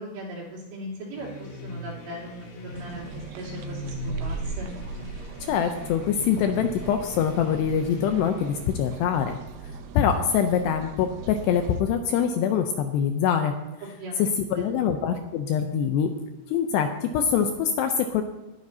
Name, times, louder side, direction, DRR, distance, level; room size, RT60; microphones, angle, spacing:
voice 1, 0.0-4.7 13.8-14.7, right 1 dB, 65° right, -5 dB, 5.3 m, -39 dB
sound 1, 1.1-8.9, left 1 dB, 55° left, 3.2 m, -40 dB
sound 2, 2.7-11.8, right 4 dB, 90° right, 2.1 m, -39 dB
voice 2, 5.5-9.4 9.9-13.5 14.2-16.1 16.5-18.2, left 8 dB, 80° left, 6 dB, 2.5 m, -24 dB
19.5 x 10.5 x 2.8 m, 1.0 s
omnidirectional pair, 5.4 m